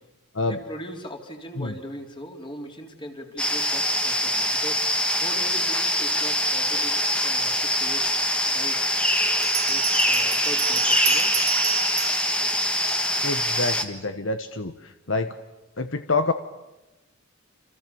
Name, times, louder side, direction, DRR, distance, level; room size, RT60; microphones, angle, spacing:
voice 1, 0.4-8.1 8.5-8.9 9.7-11.3, equal, 25° left, 3 dB, 3.7 m, -40 dB
sound 1, 3.4-13.8, left 1 dB, 5° left, 1.7 m, -23 dB
Bell, 8.2-8.3 9.4-13.3, right 12 dB, 90° right, 0.9 m, -30 dB
voice 2, 13.2-15.4 15.8-16.3, left 3 dB, 65° left, 9 dB, 1.3 m, -27 dB
29.0 x 27.0 x 7.0 m, 1.0 s
head